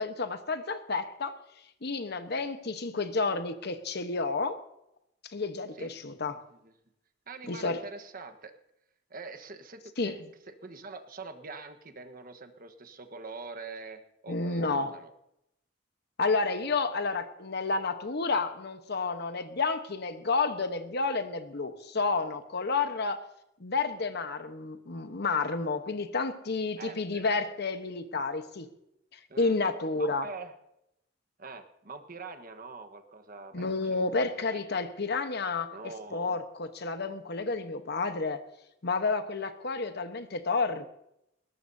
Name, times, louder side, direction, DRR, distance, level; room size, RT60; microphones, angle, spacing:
voice 1, 0.0-1.3 1.8-4.6 5.2-6.4 7.5-7.8 10.0-10.2 14.3-14.9 16.2-23.2 23.6-28.7 29.1-30.3 33.5-38.4 38.8-40.9, left 3 dB, 60° left, 9 dB, 1.1 m, -30 dB
voice 2, 7.3-8.6 9.1-15.1 26.7-27.3 29.3-29.6 29.9-30.6 31.4-33.6 33.9-34.8 35.7-36.4, right 3 dB, 50° right, 8 dB, 1.3 m, -44 dB
20.5 x 18.0 x 2.7 m, 0.81 s
head